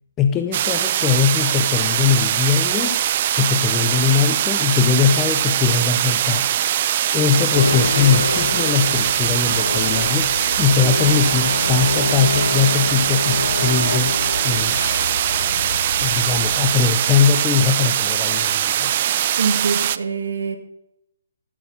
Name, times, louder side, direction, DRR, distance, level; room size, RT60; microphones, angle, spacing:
voice 1, 0.2-3.0 3.3-6.4 7.1-14.2 14.4-14.8 16.0-18.9, left 7 dB, 15° left, 7 dB, 0.5 m, -20 dB
sound 1, 0.5-20.0, right 11 dB, 40° right, 0.3 m, -21 dB
sound 2, 7.5-16.8, left 4 dB, 75° left, 0.5 m, -27 dB
voice 2, 19.4-20.6, right 5 dB, 75° right, 7 dB, 1.3 m, -24 dB
11.5 x 4.2 x 5.5 m, 0.82 s
hypercardioid pair, 155°, 0 cm